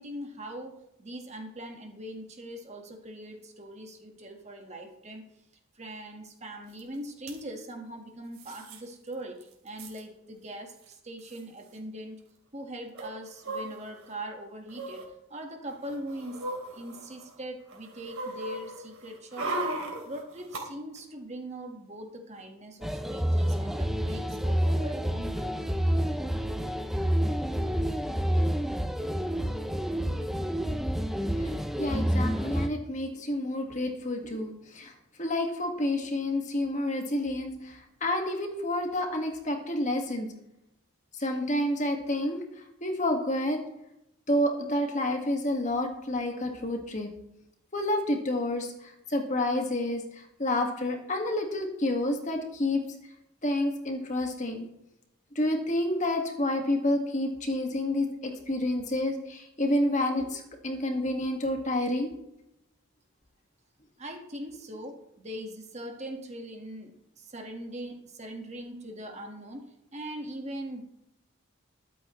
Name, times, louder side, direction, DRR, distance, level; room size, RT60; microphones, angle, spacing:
voice 1, 0.0-5.2 5.7-12.2 12.5-16.4 16.7-25.6 64.0-69.6 69.9-70.8, right 1 dB, 30° right, 2 dB, 1.6 m, -41 dB
sound 1, 6.8-6.9 7.1-7.4 8.3-8.8 9.1-9.2 9.4-10.0 10.9-11.0 11.2-11.4 13.0-14.1 14.7-15.1 15.7-17.3 17.7-20.6 21.0-21.1, right 2 dB, 85° right, 3.0 m, -37 dB
sound 2, 22.8-32.7, equal, ahead, 0.6 m, -28 dB
voice 2, 31.8-34.9 35.2-40.3 41.2-42.4 42.8-43.6 44.3-47.1 47.7-52.8 53.4-54.7 55.4-62.1, left 1 dB, 35° left, 3 dB, 1.8 m, -29 dB
22.0 x 8.5 x 3.1 m, 0.85 s
head